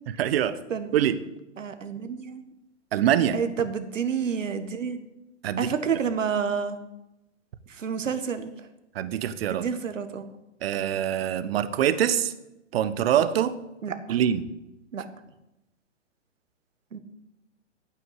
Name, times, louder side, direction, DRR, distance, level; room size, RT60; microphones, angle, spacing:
voice 1, 0.2-0.6 0.9-1.2 2.9-3.4 5.4-5.7 8.9-9.6 10.6-12.3 12.7-13.6 14.1-14.4, right 10 dB, 50° right, 14 dB, 1.1 m, -24 dB
voice 2, 1.6-2.4 3.3-5.0 5.6-6.8 7.7-8.6 9.5-10.3 13.8-14.2 14.9-15.0 16.9-17.0, right 6 dB, 80° right, 9 dB, 1.7 m, -29 dB
12.0 x 9.1 x 8.1 m, 0.92 s
hypercardioid pair, 135°, 37 cm